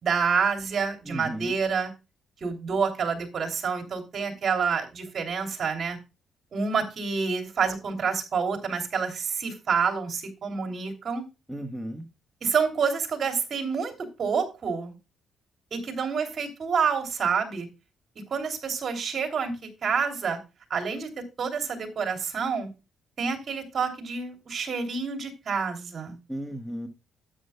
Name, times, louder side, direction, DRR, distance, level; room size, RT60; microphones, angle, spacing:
voice 1, 0.0-1.9 2.4-6.0 6.5-11.2 12.4-13.9 14.2-14.9 15.7-17.7 18.3-20.4 20.7-21.1 21.4-22.7 23.2-26.2, right 5 dB, 50° right, 4 dB, 2.9 m, -28 dB
voice 2, 1.1-1.5 11.5-12.0 26.3-26.9, equal, ahead, 5 dB, 1.3 m, -34 dB
12.5 x 9.4 x 2.2 m, 0.27 s
cardioid pair, 90°, 0 cm